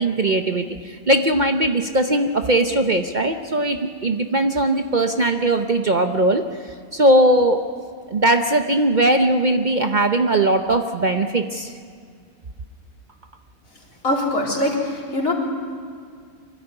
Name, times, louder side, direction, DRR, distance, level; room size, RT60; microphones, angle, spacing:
voice 1, 0.0-7.6 8.1-11.7, right 1 dB, 40° right, 6 dB, 0.8 m, -19 dB
voice 2, 14.0-15.3, left 1 dB, 75° left, -3 dB, 4.2 m, -22 dB
24.0 x 13.0 x 9.8 m, 2.1 s
omnidirectional pair, 1.4 m